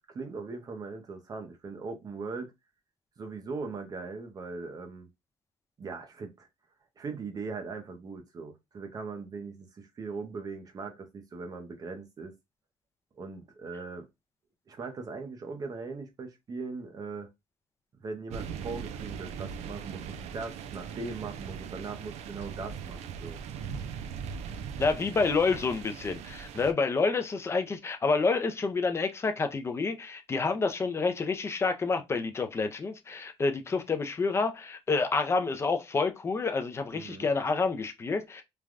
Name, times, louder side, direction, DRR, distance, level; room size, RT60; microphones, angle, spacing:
voice 1, 0.1-2.5 3.2-5.1 5.8-6.5 7.0-12.3 13.2-14.1 14.7-17.3 18.0-23.6 36.9-37.3, right 4 dB, 35° right, 0.6 m, -40 dB
sound 1, 18.3-26.7, right 7 dB, 85° right, 0.4 m, -40 dB
voice 2, 24.8-38.4, left 4 dB, 25° left, 0.4 m, -28 dB
3.2 x 2.2 x 2.4 m
cardioid pair, 145°, 11 cm